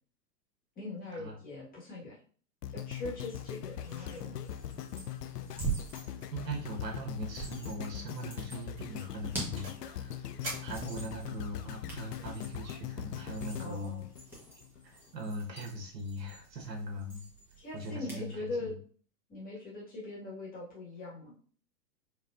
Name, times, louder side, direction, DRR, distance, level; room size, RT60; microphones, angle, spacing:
voice 1, 0.8-2.2 2.7-4.4 13.6-14.1 17.6-18.8 19.3-21.3, left 2 dB, 15° left, -5 dB, 1.6 m, -41 dB
sound 1, 2.6-14.8 15.4-15.5, left 10 dB, 70° left, 0.5 m, -41 dB
sound 2, 3.7-18.3, right 4 dB, 5° right, 1.2 m, -45 dB
sound 3, 5.6-5.9 6.2-6.4 6.7-6.8 7.3-7.6 8.0-8.2 8.7-9.9 10.4-11.4, right 1 dB, 25° right, 1.9 m, -45 dB
voice 2, 6.3-10.3 10.6-14.0 14.8-17.3 17.7-18.8, equal, 75° right, 2 dB, 1.4 m, -40 dB
4.5 x 3.1 x 2.5 m, 0.44 s
hypercardioid pair, 115°, 50 cm